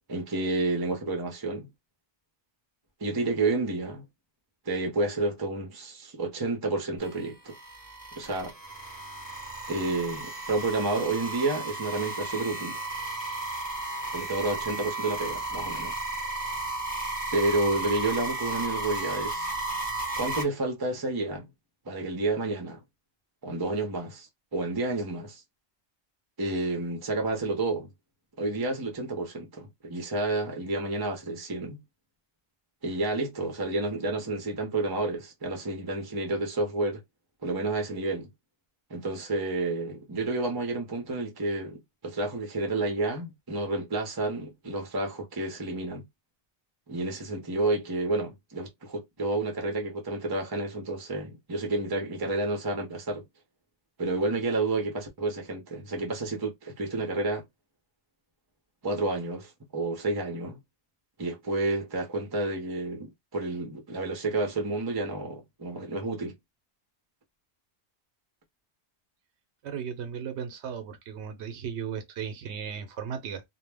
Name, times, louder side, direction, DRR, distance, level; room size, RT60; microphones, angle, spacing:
voice 1, 0.1-1.7 3.0-4.0 4.7-7.5 8.2-8.5 9.7-12.8 14.1-15.9 17.3-19.5 20.2-21.5 21.9-22.8 23.4-25.4 26.4-27.9 28.4-31.8 32.8-37.0 37.4-38.3 38.9-46.0 46.9-53.2 54.0-57.4 58.8-60.6 61.2-66.3, right 2 dB, 25° right, 0.6 m, -30 dB
sound 1, 7.0-20.4, right 2 dB, 10° left, 0.9 m, -34 dB
voice 2, 69.6-73.4, right 7 dB, 90° right, 0.9 m, -36 dB
2.2 x 2.1 x 3.3 m
omnidirectional pair, 1.1 m